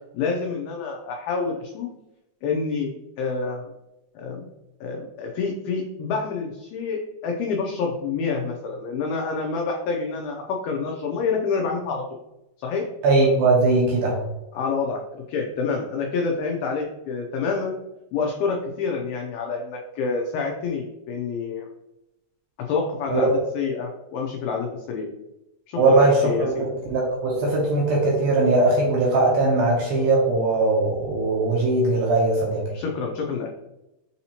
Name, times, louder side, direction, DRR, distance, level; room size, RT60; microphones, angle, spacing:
voice 1, 0.1-1.9 2.4-3.7 4.2-4.5 4.8-12.0 12.6-12.9 14.5-17.8 18.1-21.7 22.7-23.3 23.5-25.1 25.7-26.6 32.7-33.5, left 4 dB, 85° left, 0 dB, 2.1 m, -27 dB
voice 2, 13.0-14.2 23.1-23.3 25.8-32.7, right 2 dB, 75° right, -2 dB, 2.2 m, -20 dB
6.6 x 2.8 x 2.8 m, 0.92 s
omnidirectional pair, 4.8 m